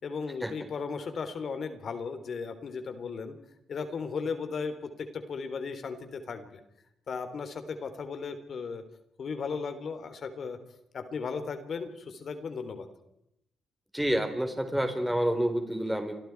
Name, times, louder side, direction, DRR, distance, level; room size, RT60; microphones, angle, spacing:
voice 1, 0.0-3.4 3.7-6.6 7.1-8.8 9.2-10.6 10.9-12.9, left 5 dB, 60° left, 9 dB, 3.3 m, -36 dB
voice 2, 13.9-16.1, right 1 dB, 5° right, 5 dB, 4.4 m, -28 dB
29.5 x 25.5 x 4.7 m, 0.82 s
cardioid pair, 65°, 0 cm